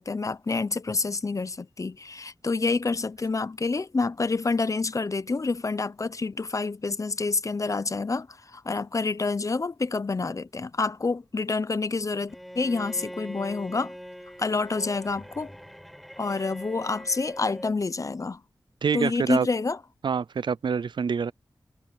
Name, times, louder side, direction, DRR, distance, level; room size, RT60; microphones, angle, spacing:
voice 1, 0.0-13.9 14.4-15.5 16.2-18.4 18.9-19.8, left 3 dB, 45° left, 0.7 m, -28 dB
Bowed string instrument, 12.3-17.8, equal, ahead, 5.0 m, -43 dB
voice 2, 18.8-19.5 20.0-21.3, right 6 dB, 80° right, 0.5 m, -26 dB
wide cardioid pair, 80°, 8 cm